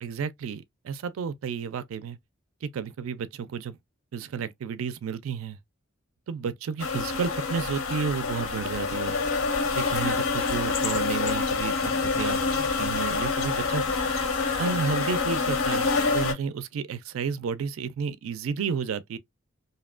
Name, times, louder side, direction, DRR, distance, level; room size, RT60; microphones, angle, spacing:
voice 1, 0.0-2.2 2.6-3.8 4.1-5.6 6.3-9.2 9.8-12.4 12.8-13.8 14.2-14.3 14.6-19.2, right 6 dB, 75° right, 0.3 m, -32 dB
sound 1, 6.8-16.3, left 4 dB, 80° left, 0.7 m, -27 dB
2.7 x 2.1 x 2.3 m
head